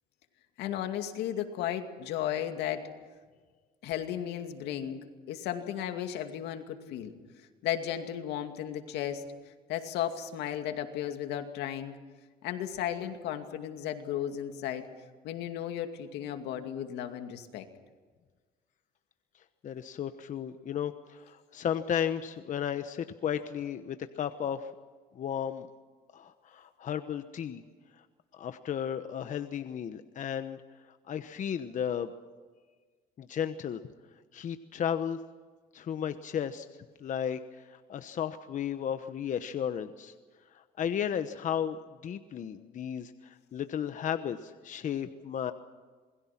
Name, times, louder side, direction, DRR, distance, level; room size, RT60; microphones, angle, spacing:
voice 1, 0.6-2.9 3.8-7.1 7.6-12.0 12.4-14.9 15.2-17.7, left 10 dB, 85° left, 6 dB, 2.4 m, -35 dB
voice 2, 19.6-24.7 25.1-25.7 26.1-27.6 28.0-28.1 28.3-30.6 30.9-32.1 33.2-33.8 34.3-35.2 35.7-36.7 37.0-40.1 40.5-45.5, left 9 dB, 50° left, 9 dB, 1.1 m, -34 dB
27.5 x 21.5 x 6.0 m, 1.4 s
cardioid pair, 110°, 17 cm